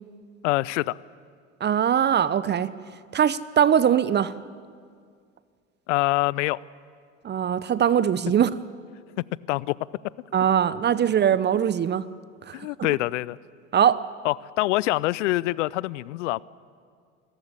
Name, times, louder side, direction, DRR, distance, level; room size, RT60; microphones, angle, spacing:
voice 1, 0.4-1.0 5.9-6.6 9.5-9.8 12.5-13.4 14.2-16.4, left 18 dB, 65° left, 23 dB, 0.7 m, -25 dB
voice 2, 1.6-2.7 3.1-4.3 7.2-8.5 10.3-12.0 12.5-12.6 13.7-14.0, right 9 dB, 25° right, 17 dB, 0.8 m, -21 dB
26.5 x 14.5 x 9.8 m, 2.1 s
hypercardioid pair, 75°, 38 cm